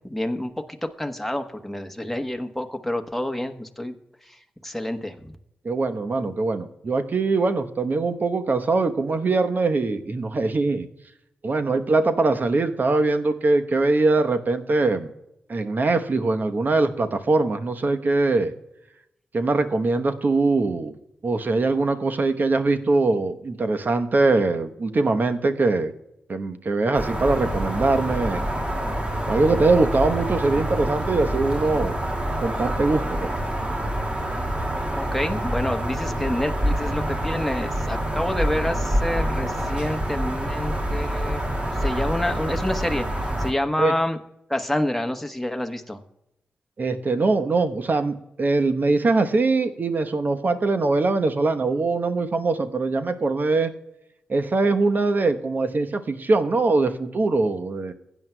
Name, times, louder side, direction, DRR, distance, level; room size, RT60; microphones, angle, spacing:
voice 1, 0.0-3.9 4.3-4.4 4.6-5.3 34.9-41.4 41.8-44.2 44.5-46.0, left 1 dB, 5° left, 5 dB, 1.1 m, -28 dB
voice 2, 5.6-10.9 11.4-15.1 15.5-18.5 19.3-20.9 21.2-25.9 26.3-28.4 29.3-32.0 32.4-33.3 43.8-44.0 46.8-53.7 54.3-57.9, right 3 dB, 50° right, 7 dB, 0.9 m, -22 dB
sound 1, 26.9-43.5, right 1 dB, 30° right, 2.2 m, -26 dB
16.0 x 9.2 x 2.2 m, 0.85 s
supercardioid pair, 45°, 4 cm